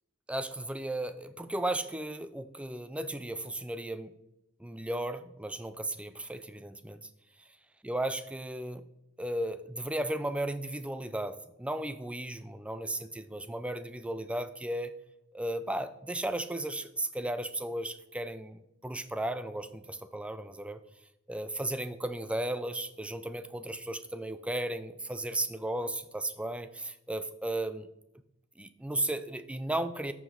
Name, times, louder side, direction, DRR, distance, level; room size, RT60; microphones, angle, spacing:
voice 1, 0.3-4.1 4.6-7.0 7.8-8.8 9.2-14.9 15.3-20.8 21.3-27.9 28.6-30.1, right 1 dB, 5° right, 11 dB, 0.4 m, -35 dB
13.5 x 4.9 x 3.8 m, 0.86 s
head